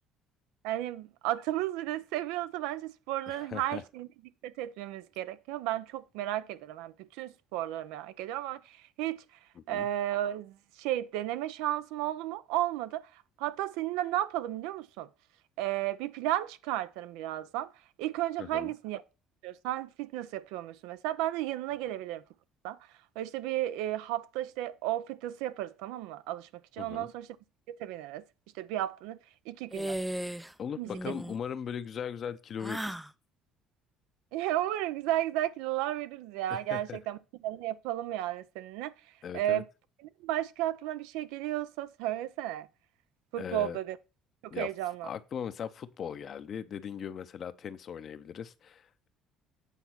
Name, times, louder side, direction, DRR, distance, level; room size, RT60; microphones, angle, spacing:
voice 1, 0.6-4.1 4.4-9.2 9.7-13.1 13.4-15.1 15.6-17.7 18.0-19.0 19.4-22.2 22.6-22.8 23.2-27.3 27.7-28.2 28.6-29.2 29.5-30.0 30.8-31.1 34.3-37.2 37.4-38.9 39.3-39.6 40.2-42.7 43.3-44.0 44.4-45.1, right 13 dB, 85° right, 0.5 m, -33 dB
voice 2, 3.3-3.8 9.6-9.9 18.4-18.7 26.8-27.1 30.6-33.0 36.5-37.0 39.2-39.6 43.4-43.8 44.5-44.7 45.0-49.1, left 8 dB, 50° left, 0.6 m, -39 dB
sound 1, 29.7-30.5 30.8-31.4 32.6-33.1, right 1 dB, 5° right, 0.4 m, -36 dB
8.3 x 4.0 x 5.8 m
supercardioid pair, 95°, 0 cm